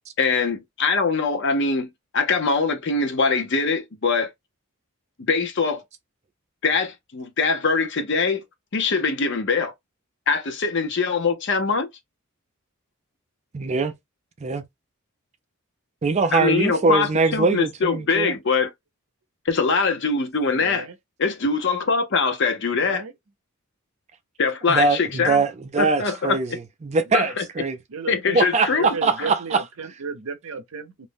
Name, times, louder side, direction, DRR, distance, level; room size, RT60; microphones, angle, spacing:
voice 1, 0.2-4.3 5.2-5.8 6.6-8.4 8.7-9.7 10.3-11.9 16.3-18.7 19.5-20.9 21.2-23.0 24.4-25.4 25.8-26.4 27.1-27.4 28.1-28.9 29.2-29.3, left 4 dB, 55° left, 0.6 m, -23 dB
voice 2, 13.5-13.9 14.4-14.6 16.0-18.3 24.7-27.8 28.3-29.6, right 4 dB, 30° right, 0.4 m, -22 dB
voice 3, 20.4-21.0 22.8-23.1 27.1-27.2 27.9-28.4 28.7-31.1, right 5 dB, 70° right, 0.6 m, -34 dB
2.5 x 2.1 x 3.3 m
head